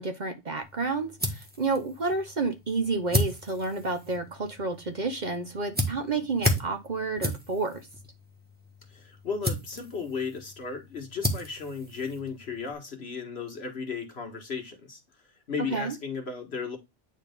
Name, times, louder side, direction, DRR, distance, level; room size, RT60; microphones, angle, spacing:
voice 1, 0.0-7.9 15.6-15.9, right 3 dB, 40° right, 0.9 m, -30 dB
sound 1, 0.6-12.7, equal, 10° right, 1.4 m, -34 dB
voice 2, 8.9-15.0 15.5-16.8, left 5 dB, 60° left, 1.8 m, -35 dB
9.2 x 3.4 x 3.5 m
omnidirectional pair, 1.2 m